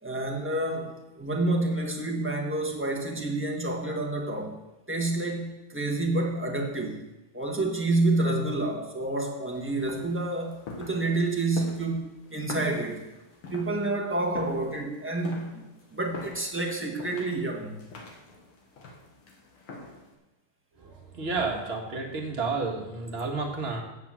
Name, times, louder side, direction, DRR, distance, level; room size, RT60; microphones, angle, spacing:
voice 1, 0.0-4.6 4.9-7.1 7.3-13.1 13.5-17.8, right 2 dB, 10° right, -1 dB, 0.8 m, -29 dB
sound 1, 9.5-20.1, left 3 dB, 75° left, 2.4 m, -44 dB
voice 2, 20.8-23.8, right 4 dB, 30° right, 1 dB, 1.6 m, -31 dB
7.9 x 7.8 x 7.3 m, 0.99 s
omnidirectional pair, 2.4 m